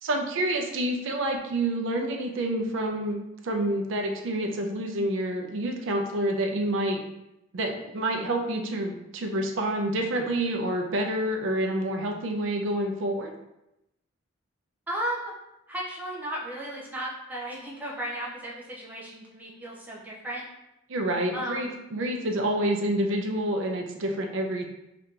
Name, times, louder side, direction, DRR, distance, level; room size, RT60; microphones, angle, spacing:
voice 1, 0.0-3.2 3.4-7.0 7.5-13.3 20.9-24.7, right 1 dB, 70° right, 3 dB, 0.5 m, -28 dB
voice 2, 14.9-15.3 15.7-20.4 21.3-21.8, right 1 dB, 10° right, -5 dB, 0.6 m, -35 dB
2.8 x 2.4 x 3.6 m, 0.89 s
head